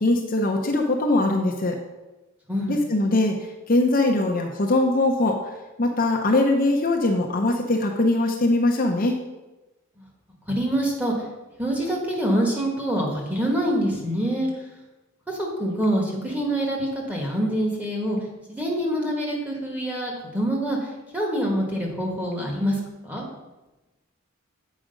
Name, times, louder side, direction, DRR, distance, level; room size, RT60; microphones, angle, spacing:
voice 1, 0.0-1.8 2.7-3.4 3.7-5.4 5.8-9.2, left 2 dB, 40° left, 1 dB, 0.7 m, -21 dB
voice 2, 2.5-2.8 10.0-10.1 10.5-11.1 11.6-14.5 15.3-18.2 18.5-20.8 21.1-23.2, right 1 dB, 5° right, -1 dB, 1.4 m, -25 dB
7.5 x 4.9 x 5.1 m, 1.1 s
head